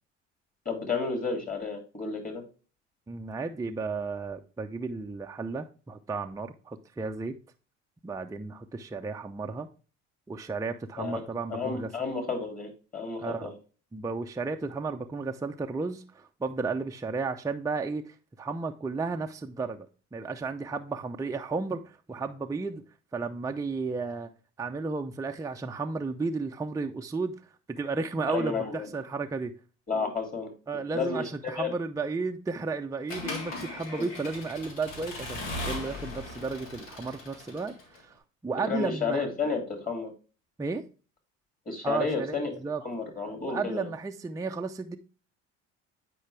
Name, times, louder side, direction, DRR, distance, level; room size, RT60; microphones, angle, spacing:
voice 1, 0.6-2.4 11.0-11.2 11.5-13.5 28.3-28.9 29.9-30.5 30.9-31.7 38.7-40.1 41.7-42.5 42.8-43.9, left 4 dB, 25° left, 2.7 m, -31 dB
voice 2, 3.1-7.3 8.0-9.7 10.3-11.9 13.2-13.5 13.9-19.9 20.1-22.8 23.1-24.3 24.6-27.3 27.7-29.5 30.7-39.2 40.6-40.8 41.8-42.8 43.4-45.0, right 4 dB, 10° right, 0.6 m, -33 dB
Accelerating revving vroom / Mechanisms, 33.1-38.0, left 2 dB, 80° left, 2.0 m, -38 dB
8.7 x 4.6 x 3.3 m
hypercardioid pair, 70°, 36 cm